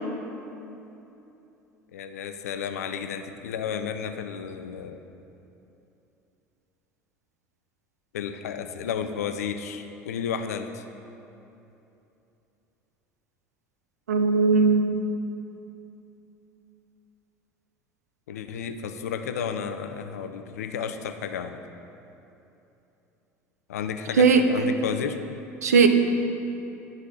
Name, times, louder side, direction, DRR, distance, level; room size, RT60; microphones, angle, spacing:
voice 1, 1.9-5.0 8.1-10.8 18.3-21.6 23.7-25.2, left 7 dB, 80° left, 8 dB, 0.4 m, -32 dB
voice 2, 14.1-15.0 24.2-24.4 25.6-25.9, right 5 dB, 85° right, 7 dB, 0.4 m, -18 dB
11.0 x 4.1 x 2.6 m, 2.9 s
hypercardioid pair, 70°, 8 cm